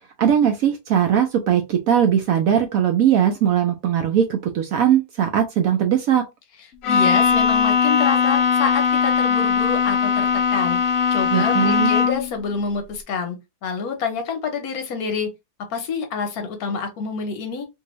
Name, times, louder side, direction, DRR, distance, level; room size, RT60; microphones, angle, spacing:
voice 1, 0.2-6.2 11.3-11.9, right 9 dB, 70° right, 0.8 m, -19 dB
Bowed string instrument, 6.8-12.4, left 6 dB, 80° left, 0.6 m, -19 dB
voice 2, 6.8-10.8 11.1-13.4 13.6-15.3 15.7-17.7, left 5 dB, 65° left, 1.1 m, -27 dB
2.8 x 2.6 x 2.9 m
omnidirectional pair, 1.8 m